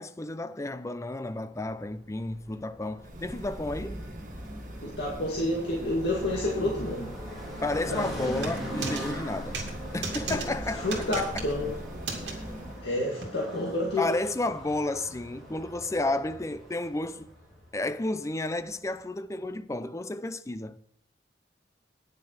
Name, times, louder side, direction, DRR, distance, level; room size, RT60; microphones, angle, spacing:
voice 1, 0.0-4.0 7.6-9.6 9.9-10.9 11.2-11.4 14.0-17.3 17.7-20.8, left 2 dB, 15° left, 0.4 m, -32 dB
sound 1, 1.5-19.0, right 1 dB, ahead, 3.6 m, -42 dB
sound 2, 3.0-12.8, equal, 50° right, 1.5 m, -41 dB
voice 2, 4.8-7.1 7.8-8.4 10.3-10.4 10.8-11.7 12.2-12.5 12.8-14.0, left 1 dB, 70° left, 2.1 m, -30 dB
sound 3, 8.4-9.0 9.5-9.7 10.0-10.5 10.9-11.5 12.1-12.3 13.2-13.3, right 4 dB, 80° right, 2.4 m, -34 dB
9.8 x 7.2 x 6.2 m
head